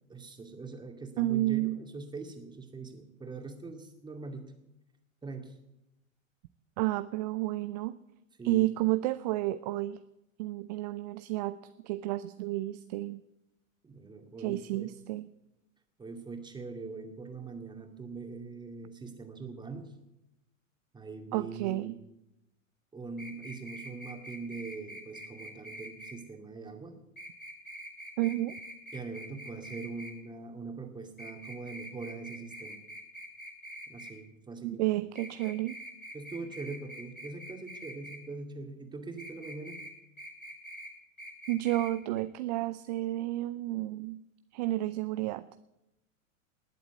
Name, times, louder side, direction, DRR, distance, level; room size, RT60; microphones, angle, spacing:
voice 1, 0.1-4.5 5.2-5.5 8.4-8.7 13.8-14.9 16.0-19.9 20.9-21.9 22.9-27.0 28.9-32.8 33.9-34.8 36.1-39.8, right 4 dB, 10° right, 4 dB, 2.2 m, -42 dB
voice 2, 1.2-1.8 6.8-8.0 8.4-10.0 10.4-13.2 14.4-15.3 21.3-21.9 28.2-28.5 34.6-35.8 41.5-44.2 44.5-45.5, right 17 dB, 30° right, 14 dB, 0.5 m, -31 dB
sound 1, 23.2-26.1 27.2-30.1 31.2-34.1 35.1-38.2 39.2-39.9 40.2-40.9 41.2-41.9 42.2-42.3, equal, 85° left, 3.3 m, -45 dB
20.0 x 7.9 x 8.5 m, 0.91 s
figure-of-eight pair, 100°, 41 cm